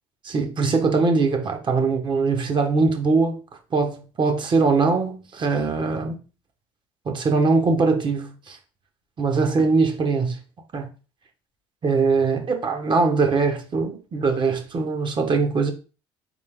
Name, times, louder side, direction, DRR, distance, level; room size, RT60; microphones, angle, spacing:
voice 1, 0.2-3.4 3.7-6.2 7.0-8.6 9.2-10.4 10.7-10.9 11.8-15.7, right 4 dB, 40° right, 1.4 m, -21 dB
4.2 x 3.4 x 3.7 m
supercardioid pair, 75°, 12 cm